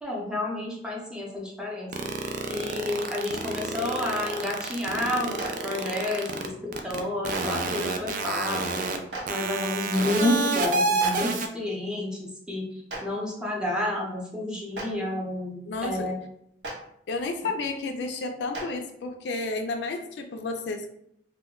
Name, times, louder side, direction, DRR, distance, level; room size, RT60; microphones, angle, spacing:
voice 1, 0.0-2.1 2.5-8.9 9.3-12.7 13.0-16.2, left 1 dB, 5° right, -3 dB, 0.6 m, -30 dB
sound 1, 1.9-6.5 6.7-7.0 7.2-9.0 9.3-11.5, right 3 dB, 50° right, 0.3 m, -28 dB
Clapping, 5.4-5.5 7.3-7.4 9.1-9.2 11.0-11.1 12.9-13.0 14.7-14.8 16.6-16.7 18.5-18.6, right 2 dB, 75° right, 0.7 m, -34 dB
voice 2, 15.6-16.1 17.1-20.9, left 3 dB, 70° left, 5 dB, 0.3 m, -31 dB
2.2 x 2.1 x 3.7 m, 0.74 s
head